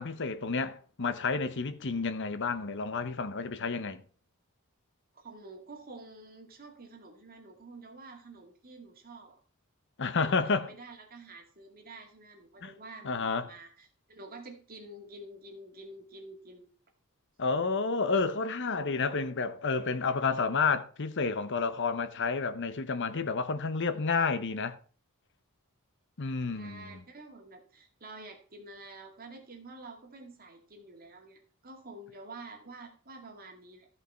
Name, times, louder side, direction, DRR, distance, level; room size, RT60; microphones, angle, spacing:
voice 1, 0.0-4.0 10.0-10.7 12.6-12.7 13.0-13.5 17.4-24.8 26.2-27.0, left 4 dB, 55° left, 0.9 m, -30 dB
voice 2, 5.1-9.4 10.1-16.7 26.5-33.9, right 2 dB, 40° right, 2.2 m, -49 dB
14.0 x 5.6 x 4.5 m
head